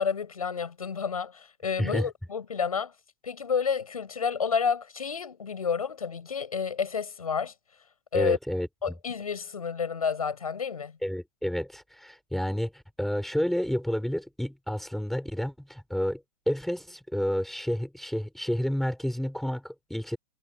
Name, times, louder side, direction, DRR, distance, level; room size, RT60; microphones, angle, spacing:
voice 1, 0.0-2.9 3.2-7.5 8.1-8.4 8.8-11.0, left 6 dB, 90° left, 6.5 m, -30 dB
voice 2, 1.8-2.1 8.1-8.7 11.0-20.2, equal, ahead, 4.7 m, -30 dB
hypercardioid pair, 115°, 18 cm